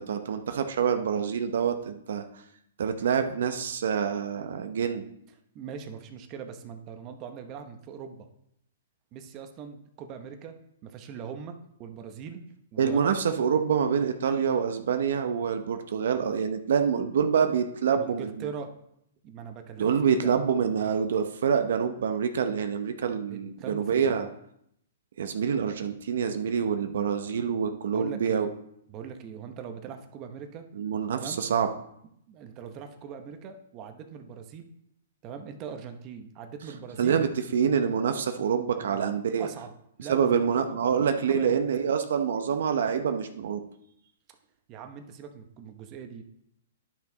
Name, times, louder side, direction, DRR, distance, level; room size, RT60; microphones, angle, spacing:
voice 1, 0.0-2.2 2.8-5.1 12.8-18.4 19.8-24.3 25.2-28.5 30.8-31.7 37.0-39.5 40.1-43.6, right 7 dB, 70° right, 7 dB, 0.7 m, -26 dB
voice 2, 5.5-8.3 9.1-10.5 10.8-12.4 12.7-13.2 17.9-18.7 19.2-20.4 23.3-24.3 27.9-28.5 28.9-30.6 31.1-31.4 32.3-34.7 35.2-37.2 38.7-39.1 39.4-39.7 40.0-41.6 44.7-46.2, right 7 dB, 30° right, 6 dB, 0.8 m, -41 dB
10.5 x 5.8 x 3.9 m, 0.74 s
hypercardioid pair, 150°, 0 cm